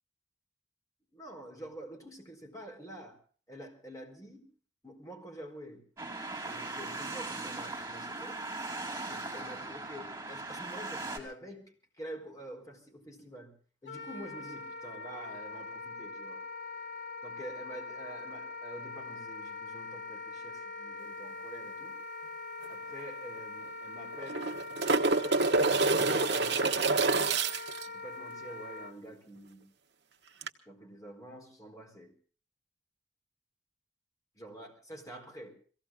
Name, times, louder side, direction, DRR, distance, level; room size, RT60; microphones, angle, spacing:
voice 1, 1.1-3.2 3.5-4.5 4.8-5.8 6.4-8.4 9.1-13.5 13.8-16.4 17.2-21.9 22.7-24.5 25.9-27.1 27.9-29.7 30.7-32.1 34.4-35.5, right 1 dB, 20° left, 2 dB, 4.4 m, -47 dB
sound 1, 6.0-11.2, right 2 dB, 15° right, 4.6 m, -39 dB
Wind instrument woodwind instrument, 13.8-28.9, left 3 dB, 85° left, 2.3 m, -43 dB
sound 2, 22.6-22.7 23.0-23.1 24.1-27.9 30.4-30.5, right 3 dB, 65° right, 1.3 m, -27 dB
23.0 x 17.0 x 3.7 m, 0.41 s
head